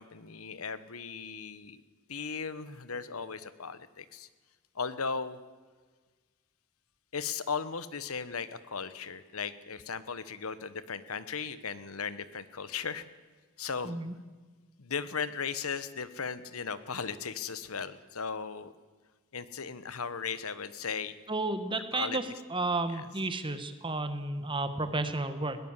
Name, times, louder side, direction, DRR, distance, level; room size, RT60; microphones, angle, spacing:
voice 1, 0.0-1.8 2.1-4.3 4.7-5.4 7.1-13.0 13.6-14.0 14.8-18.7 19.3-21.1 21.9-22.2 22.9-23.0, left 6 dB, 85° left, 14 dB, 1.1 m, -37 dB
voice 2, 21.3-22.2 22.5-25.6, right 2 dB, 25° right, 9 dB, 1.4 m, -32 dB
20.5 x 18.0 x 7.4 m, 1.4 s
head